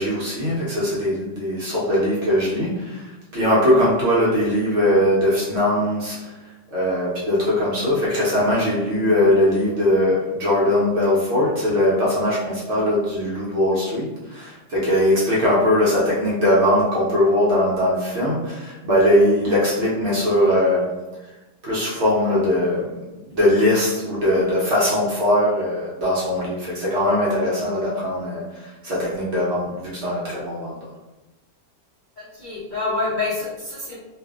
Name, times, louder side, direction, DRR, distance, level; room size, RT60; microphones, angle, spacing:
voice 1, 0.0-6.3 6.7-20.9 21.6-22.9 23.3-30.8, left 1 dB, 55° right, -7 dB, 0.9 m, -20 dB
voice 2, 32.2-33.9, left 3 dB, 55° left, -10 dB, 0.5 m, -27 dB
2.5 x 2.5 x 2.3 m, 1.1 s
omnidirectional pair, 1.7 m